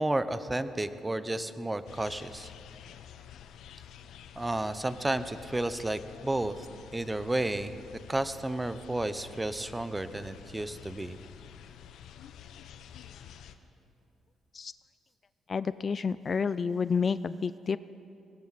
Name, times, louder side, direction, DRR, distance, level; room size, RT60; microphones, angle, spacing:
voice 1, 0.0-2.5 4.4-6.5 6.9-7.8 8.1-11.2, right 2 dB, 15° right, 12 dB, 0.7 m, -32 dB
sound 1, 1.9-13.6, left 9 dB, 80° left, 0.8 m, -49 dB
voice 2, 15.5-17.8, left 5 dB, 40° left, 16 dB, 0.3 m, -29 dB
19.5 x 18.0 x 4.1 m, 2.8 s
cardioid pair, 90°, 0 cm